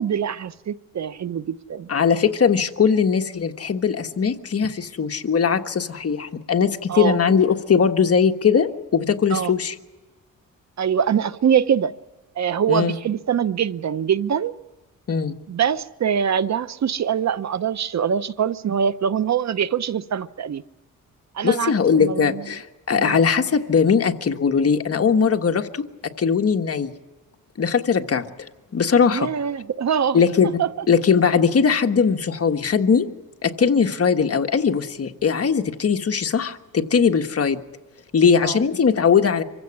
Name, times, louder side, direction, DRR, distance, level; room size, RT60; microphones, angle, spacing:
voice 1, 0.0-1.9 6.9-7.2 9.3-9.5 10.8-11.9 12.4-14.5 15.5-20.6 21.3-22.4 22.9-23.2 29.1-30.2 30.6-30.9 38.4-38.6, right 8 dB, 55° right, 15 dB, 0.8 m, -23 dB
voice 2, 1.9-9.7 12.7-13.0 15.1-15.4 21.4-25.8 26.2-26.9 27.6-28.2 28.7-29.3 30.1-30.5 30.9-33.1 33.4-37.6 38.1-39.4, left 6 dB, 45° left, 6 dB, 1.5 m, -20 dB
25.0 x 16.0 x 9.9 m, 1.2 s
cardioid pair, 100°, 34 cm